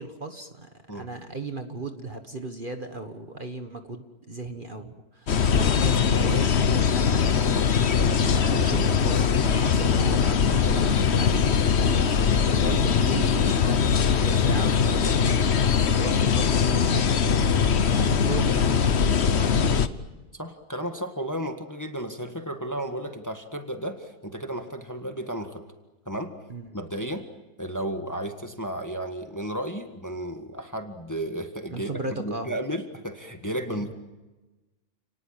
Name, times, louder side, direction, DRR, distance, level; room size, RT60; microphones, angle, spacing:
voice 1, 0.0-9.3 9.6-19.8 26.5-26.7 31.7-32.5 33.7-33.9, right 3 dB, 35° right, 6 dB, 1.7 m, -36 dB
sound 1, 5.3-19.9, left 6 dB, 50° left, 1.2 m, -21 dB
voice 2, 20.3-25.6 26.0-26.3 26.7-27.2 27.6-31.9 32.2-34.0, right 1 dB, 10° left, 6 dB, 1.7 m, -33 dB
30.0 x 19.5 x 8.9 m, 1.2 s
omnidirectional pair, 1.6 m